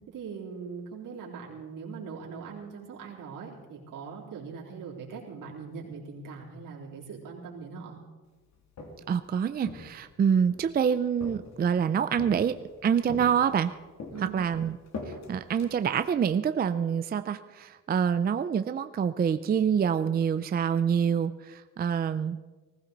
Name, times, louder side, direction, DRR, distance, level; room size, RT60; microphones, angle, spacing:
voice 1, 0.1-8.0 14.1-14.4, right 5 dB, 80° right, -3 dB, 3.8 m, -41 dB
Walk footsteps, 8.5-9.2 9.6-10.7 11.2-11.8 12.2-12.7 13.1-13.7 14.0-16.2, left 3 dB, 60° left, 2.6 m, -42 dB
voice 2, 9.1-12.6 12.8-13.7 14.2-14.8 15.3-22.5, right 7 dB, 30° right, 11 dB, 0.4 m, -26 dB
19.5 x 15.5 x 4.0 m, 1.3 s
wide cardioid pair, 150°, 32 cm